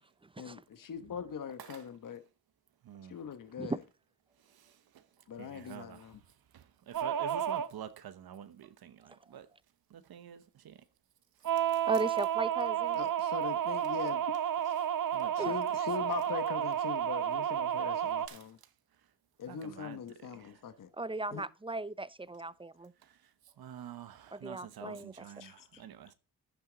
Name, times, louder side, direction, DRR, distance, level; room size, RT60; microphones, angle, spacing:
voice 1, 0.4-2.2 3.1-3.8 5.3-6.2 12.9-14.2 15.3-18.6 19.4-20.9 21.3-21.4 24.8-25.0 25.4-25.8, left 7 dB, 60° left, 1.1 m, -41 dB
voice 2, 4.5-5.0 5.4-6.0 6.5-9.5 9.9-10.8 11.7-11.8 15.1-15.5 16.0-16.1 18.3-18.4 19.5-20.0 20.3-20.6 23.0-23.1 23.6-26.1, right 9 dB, 75° right, 1.0 m, -48 dB
sound 1, 6.9-7.7 11.4-18.3, right 10 dB, 60° right, 0.9 m, -31 dB
voice 3, 11.9-13.0 15.4-15.5 21.0-22.9 24.3-25.3, right 2 dB, 15° right, 0.5 m, -36 dB
10.5 x 8.7 x 3.9 m
cardioid pair, 60°, 37 cm